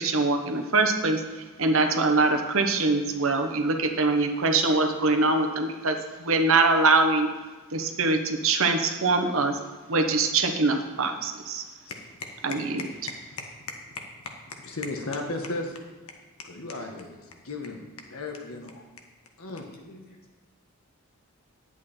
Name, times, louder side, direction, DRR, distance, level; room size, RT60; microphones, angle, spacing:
voice 1, 0.0-7.3 7.7-9.6 9.9-11.6 12.4-12.9, right 3 dB, 70° right, 5 dB, 1.1 m, -23 dB
voice 2, 14.6-15.8 16.4-17.8 18.1-18.8 19.4-19.7, left 2 dB, 80° left, 2 dB, 1.5 m, -35 dB
voice 3, 19.7-20.4, left 1 dB, 45° left, -1 dB, 1.9 m, -52 dB
10.0 x 8.3 x 4.4 m, 1.3 s
head